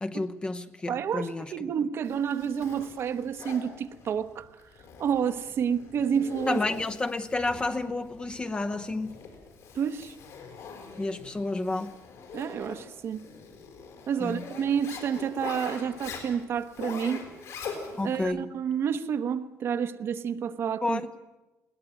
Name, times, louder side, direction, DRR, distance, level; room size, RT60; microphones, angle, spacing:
voice 1, 0.0-1.7 6.5-9.2 11.0-11.9 14.2-14.5 18.0-18.5 20.8-21.1, left 2 dB, 20° left, 0.8 m, -30 dB
voice 2, 0.9-4.5 5.0-6.6 9.8-10.2 12.3-13.2 14.1-17.3 18.0-21.0, right 7 dB, 50° right, 1.0 m, -29 dB
Zipper (clothing), 2.0-18.2, left 5 dB, 70° left, 5.5 m, -43 dB
21.0 x 18.5 x 9.0 m
cardioid pair, 165°, 6 cm